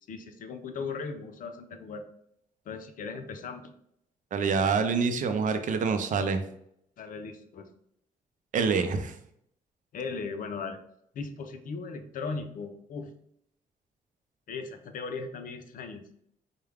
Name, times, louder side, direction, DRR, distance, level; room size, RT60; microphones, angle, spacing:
voice 1, 0.1-2.0 2.7-3.7 4.5-4.7 7.0-7.7 9.9-10.8 11.1-13.1 14.5-16.0, left 4 dB, 65° left, 7 dB, 0.5 m, -38 dB
voice 2, 4.3-6.4 8.5-9.1, right 5 dB, 60° right, 8 dB, 0.5 m, -26 dB
4.7 x 2.2 x 3.4 m, 0.72 s
cardioid pair, 110°, 15 cm